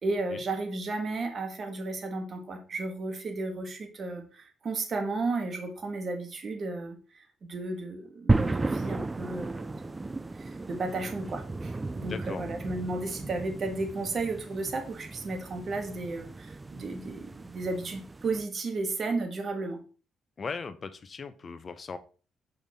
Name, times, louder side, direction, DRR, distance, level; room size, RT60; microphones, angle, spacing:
voice 1, 0.0-10.0 10.4-19.8, right 3 dB, 45° right, 5 dB, 1.6 m, -34 dB
sound 1, 8.3-18.5, right 2 dB, 20° right, 0.4 m, -34 dB
voice 2, 12.1-12.5 20.4-22.0, left 5 dB, 40° left, 12 dB, 0.8 m, -38 dB
6.2 x 5.4 x 3.6 m, 0.37 s
cardioid pair, 90°, 0 cm